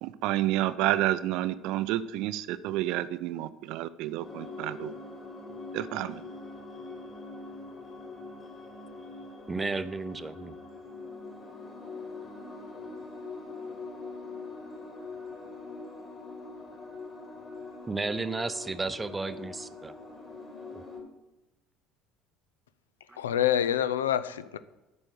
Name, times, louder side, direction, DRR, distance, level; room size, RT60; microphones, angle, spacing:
voice 1, 0.0-4.9 5.7-6.2, right 14 dB, 60° right, 0.5 m, -30 dB
sound 1, 4.2-21.0, left 3 dB, 30° left, 3.2 m, -43 dB
voice 2, 9.5-10.5 17.9-19.9 20.7-20.8 23.1-23.2, right 3 dB, 20° right, 0.6 m, -33 dB
voice 3, 23.2-24.6, left 10 dB, 75° left, 0.4 m, -26 dB
8.8 x 5.3 x 8.0 m
figure-of-eight pair, 60°, 0 cm